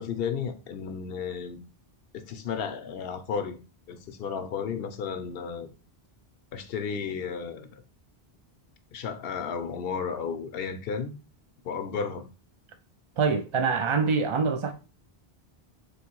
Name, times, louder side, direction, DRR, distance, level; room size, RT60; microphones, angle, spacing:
voice 1, 0.0-1.6 2.1-3.6 3.9-5.7 6.5-7.8 8.9-11.2 11.6-12.3, left 6 dB, 70° left, 0.8 m, -33 dB
voice 2, 13.2-14.7, right 5 dB, 55° right, 0.3 m, -25 dB
3.5 x 3.1 x 4.4 m
omnidirectional pair, 1.0 m